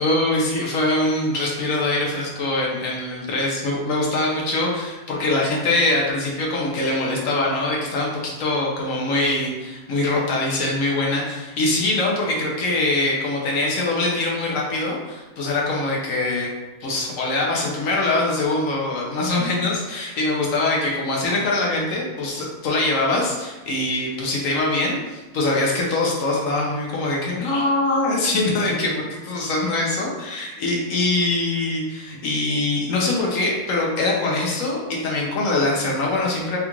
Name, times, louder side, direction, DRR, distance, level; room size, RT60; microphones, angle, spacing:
voice 1, 0.0-16.5 16.8-36.6, left 2 dB, 70° left, -2 dB, 1.1 m, -23 dB
3.6 x 2.4 x 2.9 m, 1.1 s
omnidirectional pair, 1.5 m